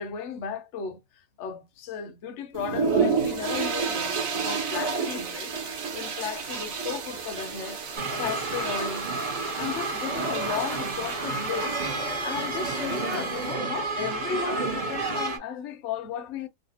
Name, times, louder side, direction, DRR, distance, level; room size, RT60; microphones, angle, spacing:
voice 1, 0.0-5.5 5.9-7.8 8.2-9.1 9.6-11.8 12.2-16.5, left 7 dB, 65° left, 0.7 m, -35 dB
sound 1, 2.5-13.5, right 5 dB, 55° right, 1.2 m, -31 dB
sound 2, 8.0-15.4, right 3 dB, 40° right, 0.7 m, -31 dB
3.1 x 2.6 x 2.8 m
omnidirectional pair, 1.9 m